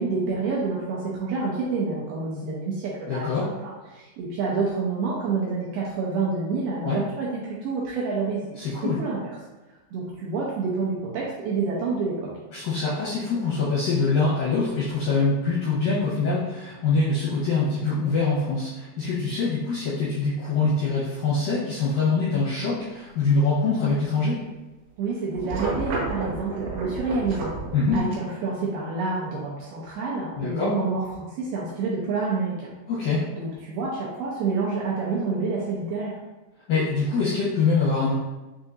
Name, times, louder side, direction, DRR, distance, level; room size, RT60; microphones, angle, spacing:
voice 1, 0.0-9.3 9.9-12.3 25.0-27.5 27.9-32.7 33.3-36.2, right 4 dB, 85° right, -5 dB, 2.3 m, -28 dB
voice 2, 3.1-3.5 6.8-7.0 8.6-9.0 12.5-24.4 27.7-28.0 30.4-30.7 32.9-33.2 36.7-38.1, left 4 dB, 75° left, -9 dB, 2.0 m, -24 dB
sound 1, 25.3-28.1, right 3 dB, 70° right, 2.9 m, -31 dB
6.7 x 2.6 x 2.5 m, 1.1 s
omnidirectional pair, 5.1 m